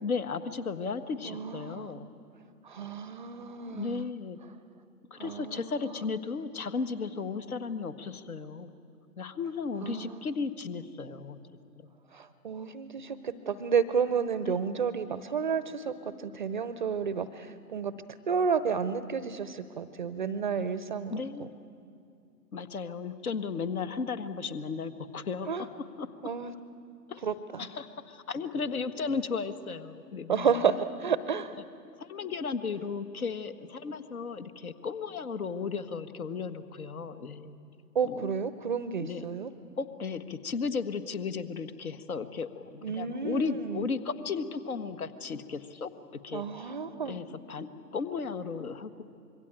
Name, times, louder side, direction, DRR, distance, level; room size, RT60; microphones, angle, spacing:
voice 1, 0.0-2.1 3.7-4.4 5.1-8.7 9.2-11.4 11.8-11.9 14.4-14.6 20.6-20.7 21.1-21.5 22.5-25.5 26.0-26.1 27.1-27.2 27.6-30.5 32.0-37.6 38.0-38.3 39.0-39.2 39.8-45.9 46.2-46.4 47.0-49.0, left 5 dB, 60° left, 11 dB, 1.6 m, -35 dB
voice 2, 1.2-1.9 2.6-4.1 5.2-6.1 9.8-10.2 12.1-17.9 18.3-21.5 25.5-25.7 26.2-26.5 27.2-27.7 30.3-31.6 37.9-39.5 42.8-43.9 46.3-47.2, right 6 dB, 30° right, 14 dB, 0.6 m, -31 dB
26.0 x 22.5 x 9.1 m, 2.5 s
figure-of-eight pair, 130°, 49 cm